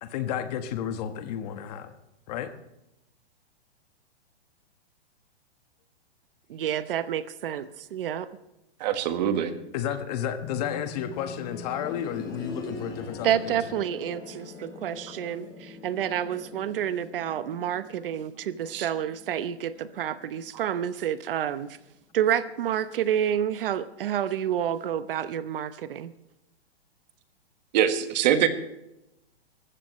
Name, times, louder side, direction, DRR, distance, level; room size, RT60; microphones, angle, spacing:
voice 1, 0.0-1.9 2.3-2.5 9.7-13.6, left 9 dB, 40° left, 9 dB, 1.4 m, -32 dB
voice 2, 6.5-8.3 13.2-21.8 22.1-26.1, right 10 dB, 60° right, 13 dB, 1.0 m, -29 dB
voice 3, 8.8-9.5 18.7-18.9 27.7-28.5, right 10 dB, 45° right, 9 dB, 1.5 m, -23 dB
sound 1, 10.4-21.2 22.6-22.7, left 3 dB, 10° left, 5.0 m, -43 dB
21.0 x 15.0 x 3.2 m, 0.89 s
hypercardioid pair, 155°, 32 cm